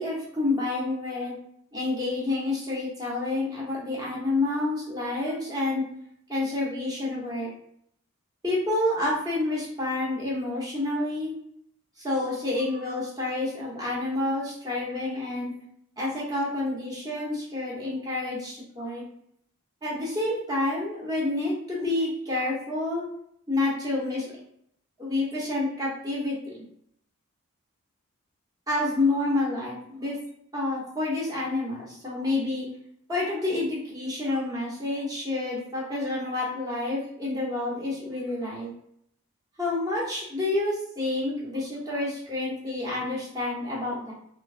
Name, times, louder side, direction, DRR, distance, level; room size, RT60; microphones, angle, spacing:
voice 1, 0.0-1.3 1.7-5.8 6.3-7.5 8.4-11.3 12.0-15.5 16.0-19.0 19.8-23.0 23.5-24.4 25.0-26.6 28.7-30.1 30.5-32.7 33.1-38.7 39.6-44.1, left 2 dB, 20° right, -5 dB, 0.8 m, -29 dB
3.1 x 2.0 x 2.4 m, 0.70 s
head